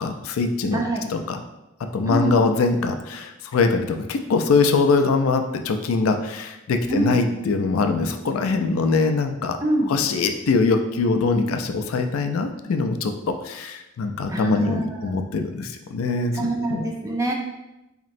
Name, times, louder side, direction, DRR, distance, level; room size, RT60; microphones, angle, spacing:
voice 1, 0.0-0.8 1.1-1.4 1.9-9.6 9.9-16.8, left 4 dB, 85° left, 6 dB, 0.4 m, -22 dB
voice 2, 0.7-1.0 2.0-2.4 6.9-7.2 9.6-9.9 14.3-15.2 16.3-17.3, right 1 dB, 15° right, 0 dB, 0.4 m, -25 dB
4.1 x 2.9 x 2.6 m, 0.95 s
head